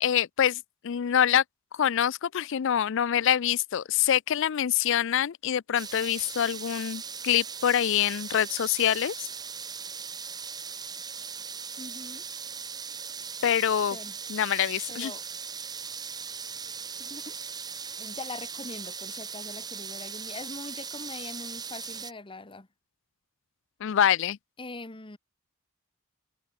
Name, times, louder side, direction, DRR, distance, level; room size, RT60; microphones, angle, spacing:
voice 1, 0.0-1.4 1.8-9.3 13.4-14.0 14.3-15.1 23.8-24.4, left 9 dB, 60° left, 0.4 m, -25 dB
sound 1, 5.8-22.1, right 6 dB, 20° right, 0.9 m, -39 dB
voice 2, 11.8-12.2 13.9-14.2 14.9-15.2 17.0-17.5 18.0-22.7 24.6-25.2, left 2 dB, 25° left, 1.2 m, -42 dB
open air
head